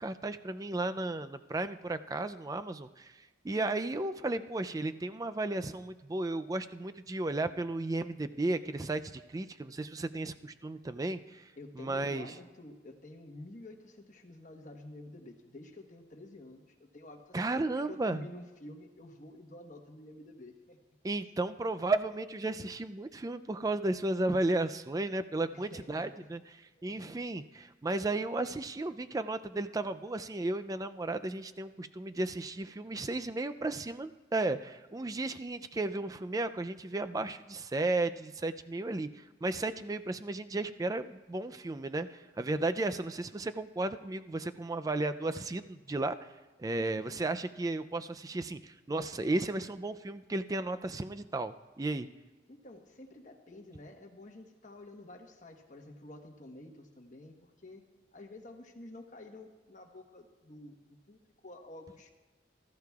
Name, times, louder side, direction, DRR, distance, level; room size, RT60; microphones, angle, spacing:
voice 1, 0.0-3.2 3.4-11.5 11.8-12.3 17.3-18.2 21.0-26.4 26.8-46.2 46.6-52.1, right 2 dB, 20° right, 11 dB, 0.3 m, -34 dB
voice 2, 11.6-20.8 25.5-26.3 26.9-27.2 46.7-47.2 52.5-62.1, left 1 dB, 45° left, 3 dB, 1.1 m, -50 dB
19.5 x 13.5 x 2.4 m, 1.2 s
head